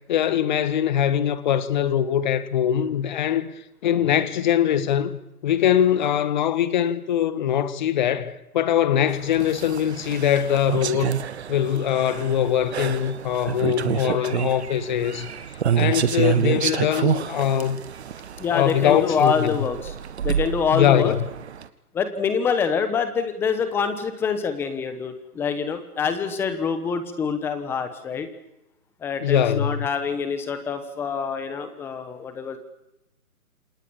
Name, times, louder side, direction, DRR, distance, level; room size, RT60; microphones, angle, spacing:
voice 1, 0.1-3.5 3.8-5.2 5.4-15.3 15.7-17.8 18.5-19.5 20.7-21.2 29.2-29.9, left 10 dB, 30° left, 1.5 m, -22 dB
sound 1, 9.1-21.7, right 8 dB, 45° right, 1.7 m, -28 dB
voice 2, 18.4-19.9 20.2-21.1 21.9-28.3 29.0-32.6, left 6 dB, 5° left, 1.1 m, -26 dB
28.0 x 26.5 x 7.1 m
hypercardioid pair, 155°, 45 cm